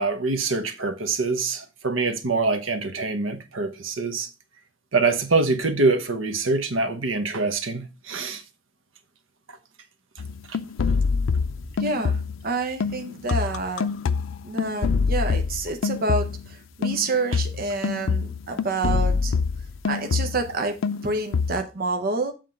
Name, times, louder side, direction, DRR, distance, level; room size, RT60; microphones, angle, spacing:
voice 1, 0.0-4.3 4.9-8.4 17.3-17.4, right 3 dB, 80° right, 1.0 m, -24 dB
sound 1, 10.2-12.5 12.8-16.5 16.8-20.6 20.8-21.6, left 5 dB, 85° left, 0.4 m, -26 dB
voice 2, 11.8-13.9 14.4-19.3 19.8-20.8 21.0-22.3, right 3 dB, 50° right, 0.7 m, -28 dB
7.6 x 3.7 x 5.2 m
head